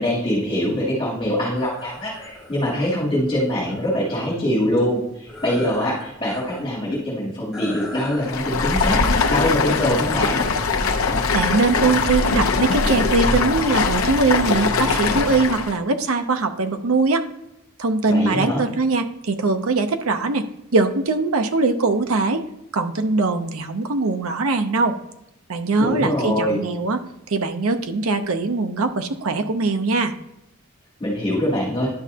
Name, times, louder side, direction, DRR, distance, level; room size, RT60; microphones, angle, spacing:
voice 1, 0.0-10.4 18.1-18.6 25.8-26.6 31.0-31.9, equal, 25° left, -7 dB, 3.0 m, -23 dB
sound 1, 1.6-4.4 5.2-6.6 6.9-7.0 7.5-8.3, left 2 dB, 5° right, 2.3 m, -40 dB
Stream, 8.2-15.8, left 4 dB, 75° left, 0.8 m, -21 dB
voice 2, 11.3-17.2 17.8-20.5 20.7-22.4 22.7-24.9 25.5-27.0 27.3-30.1, right 3 dB, 80° right, 7 dB, 0.7 m, -21 dB
11.0 x 6.0 x 2.8 m, 0.85 s
head